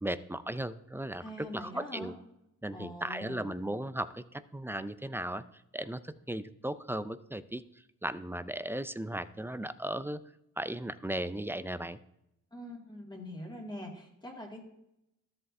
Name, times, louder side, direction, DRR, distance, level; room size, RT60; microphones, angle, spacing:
voice 1, 0.0-2.1 2.6-5.4 5.7-7.6 8.0-10.2 10.6-12.0, right 1 dB, 5° right, 14 dB, 0.4 m, -36 dB
voice 2, 1.2-2.1 2.7-3.5 12.5-14.6, left 1 dB, 15° left, 0 dB, 2.1 m, -43 dB
13.0 x 7.8 x 2.6 m, 0.83 s
cardioid pair, 90°, 32 cm